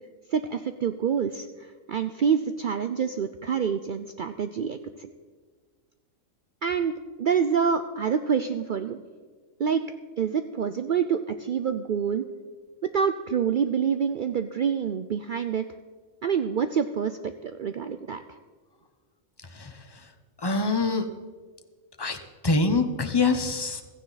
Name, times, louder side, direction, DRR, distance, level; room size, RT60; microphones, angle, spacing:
voice 1, 0.3-1.5 1.9-5.1 6.6-6.9 7.2-9.0 9.6-9.8 10.2-12.3 12.9-15.6 16.2-18.2, right 7 dB, 65° right, 9 dB, 0.5 m, -26 dB
voice 2, 19.4-21.1 22.0-23.8, left 3 dB, 20° left, 7 dB, 0.8 m, -26 dB
16.0 x 14.5 x 4.1 m, 1.5 s
omnidirectional pair, 1.4 m